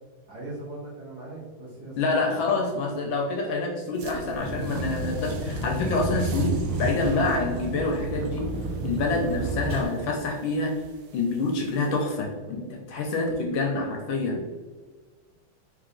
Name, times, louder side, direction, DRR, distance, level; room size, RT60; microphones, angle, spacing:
voice 1, 0.3-3.1 9.2-9.5, right 2 dB, 50° right, -6 dB, 1.7 m, -40 dB
voice 2, 2.0-8.5 8.8-10.7 11.1-14.4, left 3 dB, 70° left, 1 dB, 1.3 m, -27 dB
sound 1, 4.0-12.0, right 3 dB, 80° right, 1.4 m, -40 dB
Vehicle, 4.4-9.8, right 2 dB, 30° left, 0.8 m, -31 dB
3.9 x 3.2 x 3.8 m, 1.4 s
omnidirectional pair, 2.4 m